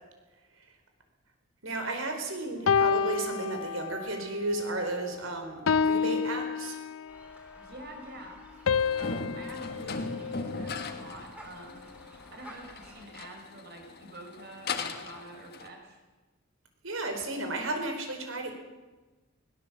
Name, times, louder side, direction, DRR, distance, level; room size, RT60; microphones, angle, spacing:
voice 1, 1.6-6.8 16.8-18.5, right 2 dB, 85° right, 5 dB, 4.5 m, -33 dB
sound 1, 2.7-4.2 4.7-5.0 5.7-7.3 8.7-11.1, left 6 dB, 85° left, 0.7 m, -29 dB
Melbourne General Cemetery a weekday afternoon, 7.1-13.1, equal, 5° right, 3.7 m, -53 dB
voice 2, 7.6-8.4 8.9-11.9 12.3-16.0, right 1 dB, 50° right, 3 dB, 5.2 m, -47 dB
sound 2, 8.7-15.7, left 3 dB, 50° left, 1.5 m, -38 dB
21.5 x 18.0 x 7.5 m, 1.2 s
head